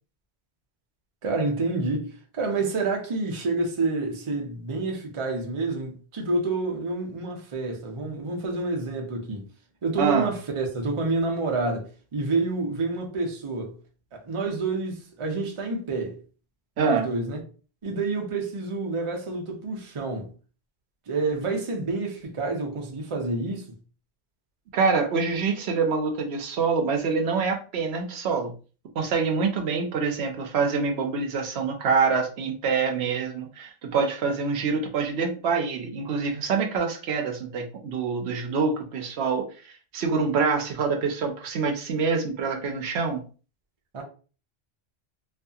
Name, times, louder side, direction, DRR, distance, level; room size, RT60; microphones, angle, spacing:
voice 1, 1.2-9.5 9.8-11.9 12.1-13.8 14.1-16.2 16.8-17.4 17.8-20.3 21.1-23.7 43.9-44.0, right 3 dB, 40° right, 0.6 m, -28 dB
voice 2, 10.0-10.3 16.8-17.1 24.7-28.5 29.0-43.2, right 5 dB, 75° right, 0.8 m, -26 dB
2.6 x 2.5 x 2.3 m
omnidirectional pair, 1.1 m